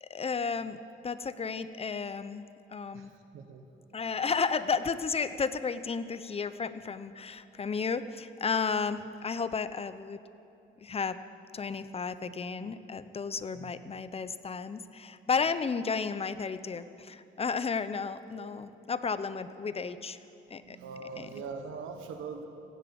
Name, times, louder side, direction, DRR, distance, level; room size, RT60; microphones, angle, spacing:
voice 1, 0.0-3.1 3.9-10.2 10.8-11.2 11.5-20.2 20.5-20.8 21.2-21.3, left 5 dB, 30° left, 13 dB, 0.7 m, -33 dB
voice 2, 2.9-3.6 13.5-13.9 18.3-18.6 20.6-22.5, right 5 dB, 90° right, 6 dB, 1.3 m, -42 dB
16.0 x 10.5 x 8.7 m, 2.7 s
cardioid pair, 90°, 20 cm